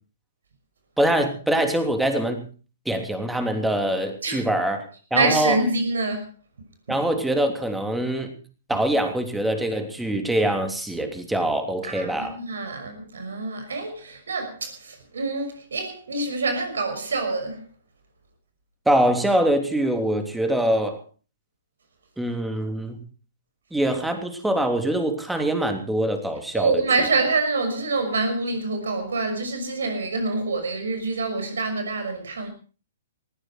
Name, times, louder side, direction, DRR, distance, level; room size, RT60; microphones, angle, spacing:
voice 1, 1.0-2.5 2.8-5.6 6.9-8.3 8.7-12.4 18.8-21.0 22.2-23.0 23.7-26.8, right 1 dB, 5° right, 3.1 m, -24 dB
voice 2, 5.1-6.3 11.8-17.6 26.5-32.5, right 3 dB, 75° right, 6.0 m, -26 dB
19.5 x 14.5 x 4.6 m
hypercardioid pair, 120°, 0 cm